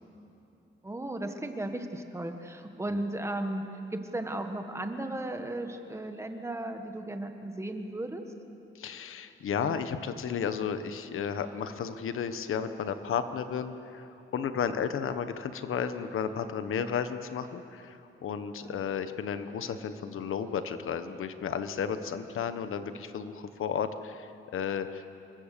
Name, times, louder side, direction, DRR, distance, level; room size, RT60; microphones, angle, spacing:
voice 1, 0.8-3.6 3.9-8.2 18.6-18.8, right 1 dB, 15° right, 5 dB, 1.5 m, -35 dB
voice 2, 8.7-25.0, left 7 dB, 75° left, 10 dB, 1.2 m, -33 dB
28.0 x 23.0 x 6.9 m, 2.8 s
wide cardioid pair, 165°, 21 cm